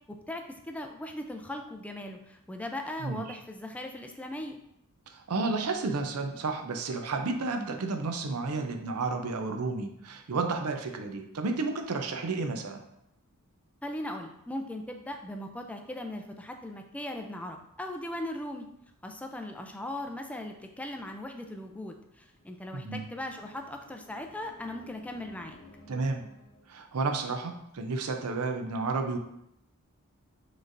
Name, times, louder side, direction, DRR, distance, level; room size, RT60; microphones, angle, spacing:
voice 1, 0.1-4.6 13.8-18.7 19.0-25.6, left 1 dB, 5° left, 4 dB, 0.3 m, -39 dB
voice 2, 5.1-12.8 22.7-23.1 25.9-26.3 26.7-29.2, right 3 dB, 90° right, 5 dB, 0.6 m, -31 dB
sound 1, 22.2-26.8, left 2 dB, 40° left, 0.8 m, -55 dB
6.3 x 3.2 x 2.5 m, 0.80 s
head